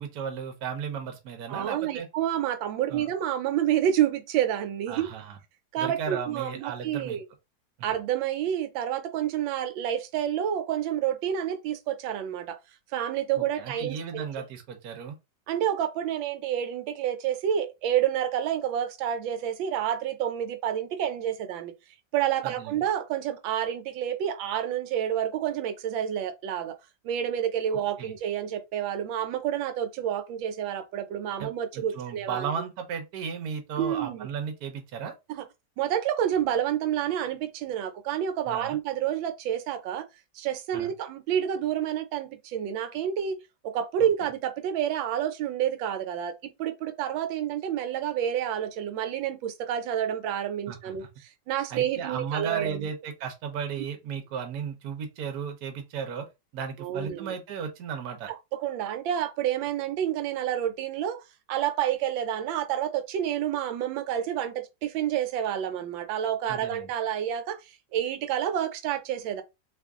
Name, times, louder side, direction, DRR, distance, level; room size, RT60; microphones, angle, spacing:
voice 1, 0.0-2.1 2.9-3.1 4.9-5.4 5.8-7.2 7.8-7.9 13.6-15.2 22.4-22.8 27.7-28.1 31.4-35.1 38.5-38.8 40.7-40.9 44.0-44.1 50.7-51.1 51.7-56.3 56.5-58.3 66.5-66.9, right 7 dB, 65° right, 1.2 m, -35 dB
voice 2, 1.5-5.1 5.7-7.2 7.8-12.6 12.9-14.3 15.5-21.7 22.1-26.8 27.0-32.5 33.8-34.3 35.3-35.4 35.8-40.1 40.3-43.4 43.6-52.9 56.8-57.3 58.5-69.4, right 10 dB, 85° right, 1.3 m, -29 dB
3.1 x 2.5 x 3.5 m
omnidirectional pair, 2.0 m